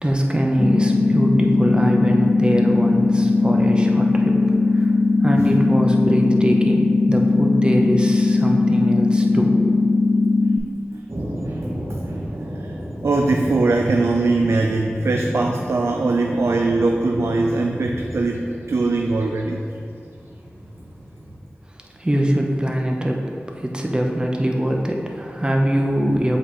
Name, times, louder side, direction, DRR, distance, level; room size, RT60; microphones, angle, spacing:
voice 1, 0.0-4.9 5.2-9.7 22.0-26.4, right 1 dB, 20° right, 1 dB, 0.7 m, -22 dB
sound 1, 0.6-10.6, left 3 dB, 55° left, 0.9 m, -18 dB
sound 2, 11.1-21.3, equal, 60° right, 1.2 m, -33 dB
voice 2, 13.0-18.4 18.7-19.6, right 3 dB, 80° right, 2 dB, 0.3 m, -21 dB
7.6 x 4.3 x 3.1 m, 2.5 s
wide cardioid pair, 65°, 4 cm